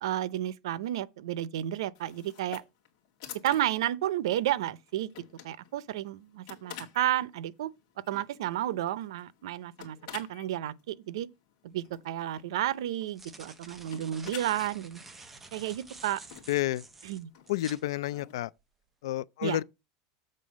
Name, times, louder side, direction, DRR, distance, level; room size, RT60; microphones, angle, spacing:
voice 1, 0.0-2.6 3.4-5.1 5.4-7.7 8.1-11.3 11.6-15.0 15.5-16.2 17.0-17.3 19.4-19.6, right 12 dB, 90° right, 0.6 m, -32 dB
sound 1, 1.9-18.4, left 10 dB, 45° left, 2.4 m, -51 dB
sound 2, 11.8-11.9 12.9-17.8, right 3 dB, 10° right, 0.8 m, -49 dB
voice 2, 16.5-16.9 17.5-18.5 19.0-19.6, left 14 dB, 85° left, 0.4 m, -30 dB
7.6 x 3.9 x 6.2 m
supercardioid pair, 175°, 3 cm